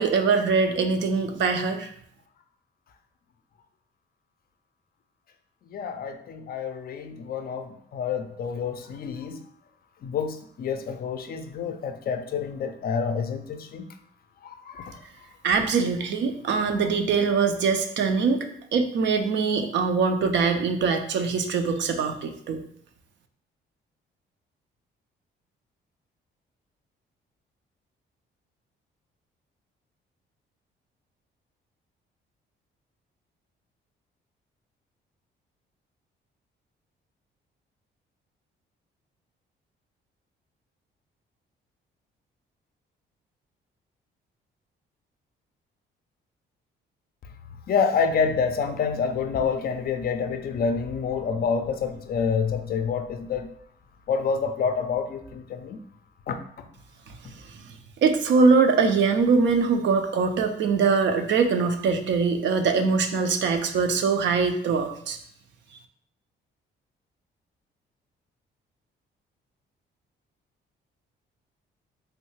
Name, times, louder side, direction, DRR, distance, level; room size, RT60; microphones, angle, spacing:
voice 1, 0.0-1.9 15.4-22.6 58.0-65.2, right 5 dB, 65° right, 6 dB, 0.5 m, -23 dB
voice 2, 5.7-9.4 10.0-13.9 14.7-15.0 47.7-53.5 54.1-55.8 56.3-56.4, left 6 dB, 50° left, 7 dB, 0.4 m, -28 dB
3.2 x 2.3 x 3.1 m, 0.66 s
cardioid pair, 90°, 20 cm